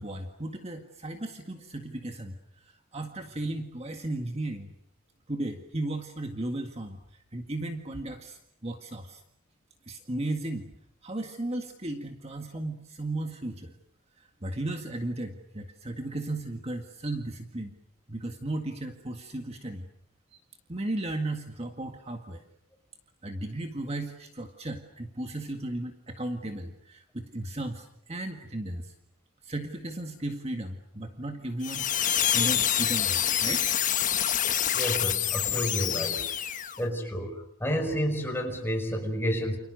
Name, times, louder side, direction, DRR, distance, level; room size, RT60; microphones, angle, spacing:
voice 1, 0.0-4.7 5.3-7.0 7.3-9.2 9.9-10.7 11.0-13.7 14.2-17.7 18.1-19.9 20.7-22.4 23.2-28.9 29.4-33.7, right 1 dB, 30° right, 4 dB, 1.9 m, -35 dB
sound 1, 31.6-36.8, left 10 dB, 35° left, 1.3 m, -27 dB
voice 2, 34.7-36.3 36.8-39.6, equal, 10° left, 3 dB, 6.0 m, -30 dB
30.0 x 28.0 x 6.6 m, 0.73 s
head